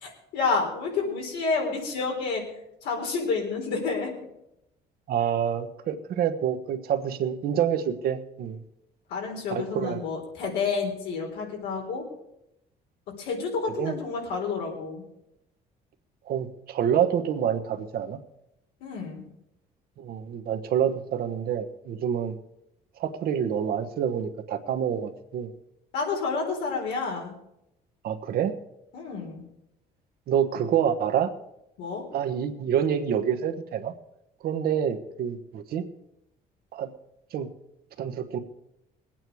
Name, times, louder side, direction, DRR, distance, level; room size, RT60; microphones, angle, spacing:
voice 1, 0.0-2.4 2.8-4.1 9.1-12.0 13.2-15.0 18.8-19.2 25.9-27.3 28.9-29.4 31.8-32.0, left 4 dB, 85° left, 0 dB, 4.0 m, -29 dB
voice 2, 5.1-8.6 9.5-10.0 13.8-13.9 16.3-18.2 20.0-22.4 23.0-25.5 28.0-28.5 30.3-31.3 32.1-33.9 34.4-35.8 36.7-36.9 37.3-37.5 38.0-38.4, right 8 dB, 65° right, 8 dB, 1.2 m, -27 dB
20.0 x 8.9 x 4.7 m, 0.84 s
cardioid pair, 110°, 17 cm